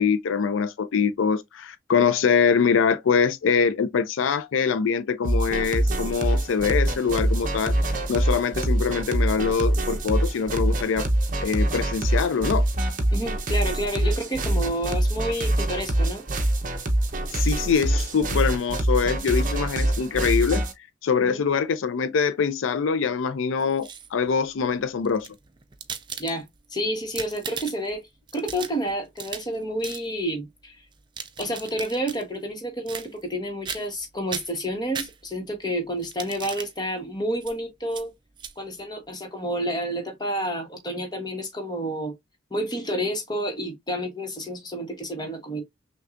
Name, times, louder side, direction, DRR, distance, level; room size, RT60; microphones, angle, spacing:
voice 1, 0.0-7.7 8.1-11.1 11.4-12.7 17.3-20.6 21.0-25.3, left 6 dB, 85° left, 0.4 m, -24 dB
sound 1, 5.2-20.7, right 1 dB, 40° right, 0.8 m, -24 dB
voice 2, 13.1-16.2 21.2-21.4 26.2-26.4 26.7-28.0 28.3-30.8 31.4-38.1 38.6-42.1 42.5-45.6, equal, 20° left, 1.1 m, -29 dB
sound 2, 23.6-24.3 25.0-26.7 27.0-27.9 28.3-29.6 29.8-30.1 30.9-32.2 32.9-33.4 33.7-34.0 34.3-35.5 36.0-36.7 37.4-37.5 37.9-38.0 38.4-38.5, right 7 dB, 25° right, 0.4 m, -37 dB
5.9 x 2.3 x 2.5 m
head